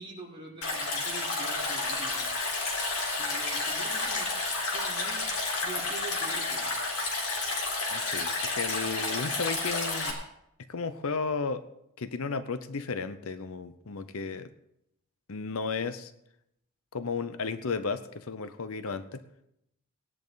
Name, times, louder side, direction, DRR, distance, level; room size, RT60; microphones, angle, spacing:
voice 1, 0.0-2.3 3.2-4.3 4.7-5.3 5.6-6.7, right 2 dB, 25° right, -5 dB, 4.4 m, -44 dB
Stream, 0.6-10.1, left 3 dB, 85° left, 3.7 m, -31 dB
voice 2, 7.9-10.2 10.7-11.6 12.0-14.5 15.3-16.1 16.9-19.2, left 4 dB, 65° left, 12 dB, 0.7 m, -33 dB
18.0 x 10.5 x 4.0 m, 0.79 s
head